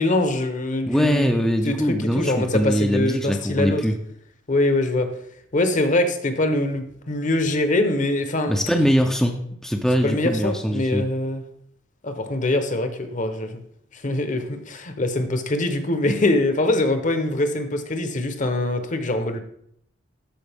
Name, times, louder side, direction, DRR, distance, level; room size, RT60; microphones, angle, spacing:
voice 1, 0.0-1.4 1.6-3.8 4.5-5.1 5.5-8.6 10.0-11.5 12.0-13.6 13.9-19.4, left 2 dB, 40° left, 8 dB, 0.9 m, -23 dB
voice 2, 0.9-3.9 8.5-11.0, equal, ahead, 2 dB, 0.6 m, -22 dB
13.0 x 4.8 x 3.5 m, 0.71 s
head